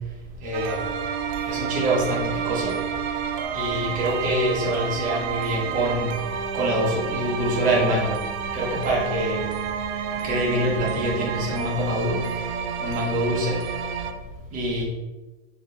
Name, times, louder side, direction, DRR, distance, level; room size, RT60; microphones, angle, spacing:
voice 1, 0.4-0.8 1.5-2.7 3.5-6.1 6.5-8.1 8.5-9.4 10.2-12.2 12.8-13.6 14.5-14.8, right 1 dB, 20° right, -3 dB, 0.8 m, -25 dB
sound 1, 0.5-14.1, right 7 dB, 65° right, 0.5 m, -30 dB
4.2 x 2.8 x 3.2 m, 1.1 s
supercardioid pair, 170°, 36 cm